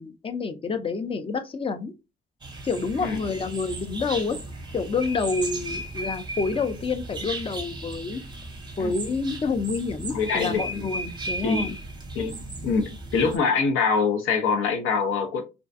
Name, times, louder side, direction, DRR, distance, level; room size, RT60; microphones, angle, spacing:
voice 1, 0.0-1.9 2.6-4.4 4.7-8.2 8.8-11.8, left 4 dB, 30° left, 0.4 m, -28 dB
sound 1, 2.4-13.4, right 2 dB, 20° right, 0.7 m, -36 dB
voice 2, 10.1-10.7 11.4-11.7 12.1-15.4, left 5 dB, 85° left, 0.6 m, -24 dB
2.4 x 2.2 x 2.5 m
cardioid pair, 90°, 20 cm